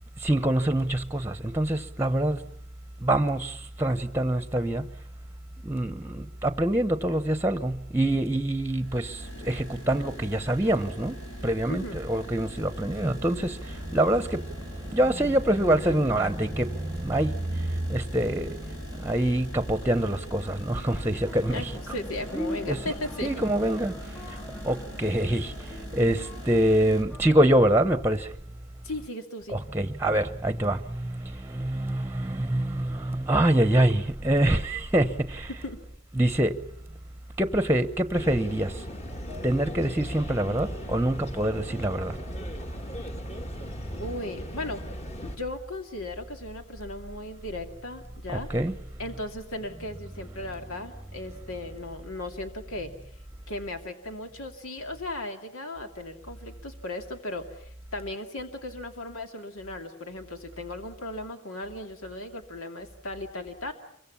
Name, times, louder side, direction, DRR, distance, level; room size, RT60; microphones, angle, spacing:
voice 1, 0.2-2.4 3.0-4.9 5.6-21.7 22.3-22.8 23.2-28.3 29.5-35.5 36.1-36.6 37.4-38.8 39.4-42.2 48.3-48.8, right 1 dB, 10° right, 1.0 m, -25 dB
sound 1, 8.6-27.0, equal, 70° left, 5.8 m, -42 dB
voice 2, 11.7-12.0 21.5-23.4 28.8-29.6 35.6-35.8 44.0-44.8 45.4-48.5 49.0-52.9 53.5-63.7, left 1 dB, 90° left, 2.6 m, -36 dB
sound 2, 21.1-28.2, equal, 10° left, 1.5 m, -46 dB
sound 3, 38.1-45.4, equal, 30° left, 1.9 m, -37 dB
27.5 x 23.5 x 7.2 m
head